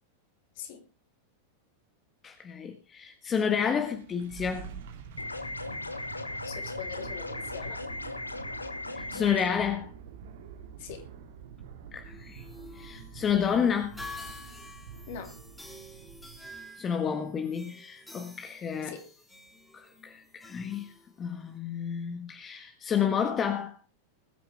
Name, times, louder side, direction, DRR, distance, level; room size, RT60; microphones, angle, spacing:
voice 1, 2.2-4.8 8.9-9.9 11.9-12.4 12.7-14.0 16.8-18.9 19.7-20.9 21.2-23.7, left 7 dB, 25° left, 1.6 m, -30 dB
sound 1, 3.6-16.7, right 7 dB, 55° right, 2.1 m, -46 dB
sound 2, 5.2-9.6, left 2 dB, 80° left, 1.1 m, -37 dB
voice 2, 6.4-7.8 10.8-11.1 15.1-15.4 18.8-19.0, left 8 dB, 50° left, 3.2 m, -42 dB
sound 3, 12.0-21.6, left 2 dB, 5° left, 2.2 m, -49 dB
21.0 x 9.7 x 3.4 m
figure-of-eight pair, 90°, 0 cm